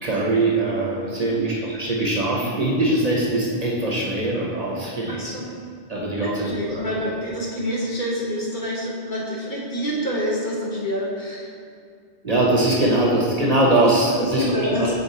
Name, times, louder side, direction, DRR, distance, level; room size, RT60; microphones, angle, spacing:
voice 1, 0.0-5.4 5.9-6.9 12.2-14.9, right 2 dB, 40° right, -4 dB, 1.0 m, -22 dB
voice 2, 1.1-1.4 5.1-5.5 6.1-11.5 14.2-14.9, equal, 50° left, -6 dB, 1.4 m, -27 dB
6.5 x 4.3 x 4.2 m, 2.2 s
omnidirectional pair, 1.0 m